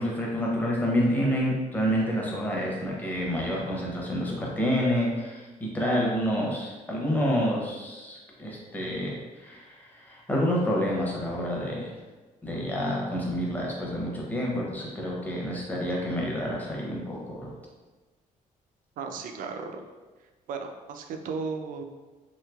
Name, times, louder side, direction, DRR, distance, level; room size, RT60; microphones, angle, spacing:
voice 1, 0.0-11.9 12.4-17.5, equal, 10° left, -3 dB, 0.7 m, -28 dB
voice 2, 19.0-19.8 20.5-21.8, right 5 dB, 75° right, 5 dB, 0.4 m, -35 dB
3.1 x 2.8 x 2.3 m, 1.2 s
cardioid pair, 110°, 14 cm